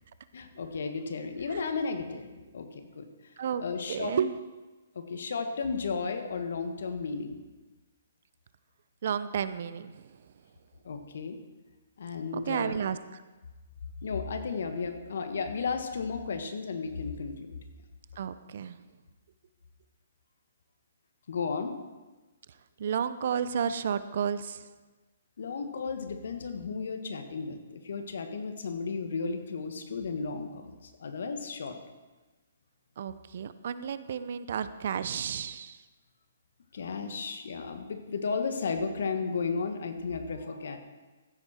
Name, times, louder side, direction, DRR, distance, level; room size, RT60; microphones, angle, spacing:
voice 1, 0.3-3.1 3.6-4.1 4.9-7.4 10.8-11.4 12.0-12.8 14.0-17.5 21.3-21.8 25.4-31.8 36.7-40.8, left 4 dB, 70° left, 7 dB, 1.5 m, -34 dB
voice 2, 3.4-4.4 9.0-10.0 12.3-13.2 18.2-18.8 22.8-24.6 33.0-35.8, right 7 dB, 60° right, 14 dB, 0.6 m, -32 dB
15.0 x 7.9 x 4.4 m, 1.2 s
hypercardioid pair, 140°, 0 cm